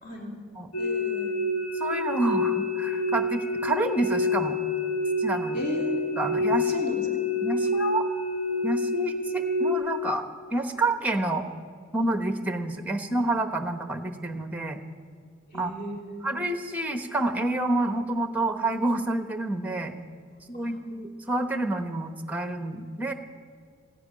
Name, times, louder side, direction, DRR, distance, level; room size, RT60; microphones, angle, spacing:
voice 1, 0.0-0.4 0.8-1.3 5.5-5.9 6.7-7.1 15.5-16.3 20.6-20.8, equal, 40° left, -2 dB, 3.0 m, -36 dB
sound 1, 0.7-9.7, left 2 dB, 75° left, 2.3 m, -27 dB
voice 2, 1.8-4.6 5.2-5.6 6.2-6.8 7.4-8.1 8.6-10.2 10.5-11.5 11.9-14.8 15.6-15.7 16.2-19.9 20.5-23.1, right 2 dB, 5° right, 7 dB, 0.9 m, -28 dB
15.0 x 9.3 x 9.4 m, 2.1 s
head